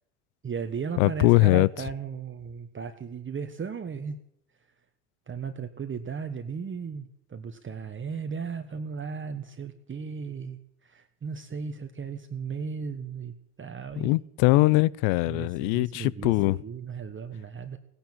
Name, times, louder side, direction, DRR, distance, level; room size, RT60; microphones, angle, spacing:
voice 1, 0.4-4.2 5.3-14.1 15.3-17.8, right 6 dB, 25° right, 1.3 m, -36 dB
voice 2, 1.0-1.7 14.0-16.6, left 21 dB, 65° left, 0.7 m, -21 dB
17.5 x 10.5 x 7.4 m
hypercardioid pair, 70°, 46 cm